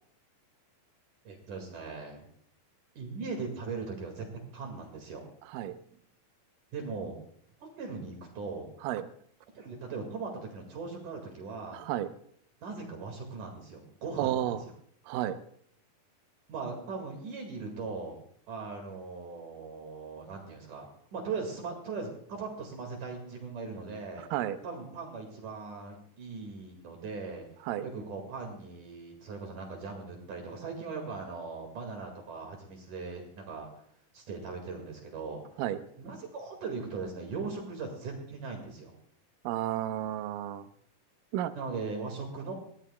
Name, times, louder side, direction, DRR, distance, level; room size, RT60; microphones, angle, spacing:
voice 1, 1.2-2.2 2.9-4.3 4.5-5.3 6.7-7.2 7.6-8.7 9.5-11.8 12.6-14.6 16.5-18.2 18.5-20.9 21.1-24.2 24.6-27.4 27.8-33.7 34.1-35.6 36.0-38.9 41.5-42.5, right 4 dB, 60° right, 2 dB, 3.2 m, -39 dB
voice 2, 5.5-5.8 8.8-9.1 11.7-12.1 14.2-14.6 15.1-15.4 24.2-24.6 27.6-27.8 35.6-35.8 39.4-40.7 41.3-41.5, right 12 dB, 75° right, 11 dB, 2.1 m, -32 dB
22.0 x 15.5 x 2.2 m, 0.64 s
omnidirectional pair, 4.5 m